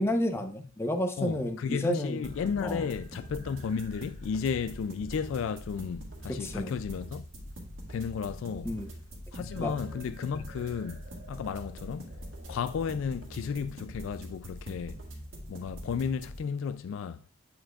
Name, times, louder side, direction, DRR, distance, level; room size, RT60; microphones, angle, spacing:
voice 1, 0.0-2.2 2.6-2.8 6.3-6.7 8.6-8.9 9.6-9.7, left 1 dB, 10° left, 0.8 m, -30 dB
voice 2, 1.2-7.3 7.9-8.7 9.3-11.0 11.3-12.1 12.5-15.0 15.5-17.2, left 6 dB, 65° left, 0.3 m, -33 dB
sound 1, 2.2-16.4, equal, 65° right, 2.1 m, -43 dB
8.8 x 7.2 x 2.4 m
head